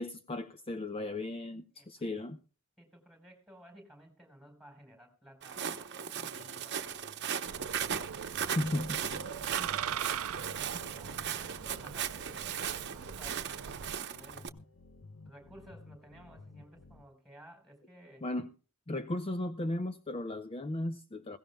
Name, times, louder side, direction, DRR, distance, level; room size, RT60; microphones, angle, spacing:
voice 1, 0.0-2.4 8.4-9.0 18.2-18.5 18.9-21.4, left 1 dB, 25° left, 0.6 m, -36 dB
voice 2, 1.7-2.1 2.8-7.1 9.6-14.5 15.2-18.3, right 1 dB, ahead, 4.2 m, -56 dB
Walk footsteps, 5.4-14.5, right 8 dB, 55° right, 0.9 m, -37 dB
sound 1, 6.4-17.0, left 3 dB, 70° left, 1.0 m, -55 dB
sound 2, 7.4-14.0, right 8 dB, 85° right, 0.5 m, -41 dB
21.0 x 16.5 x 2.3 m
head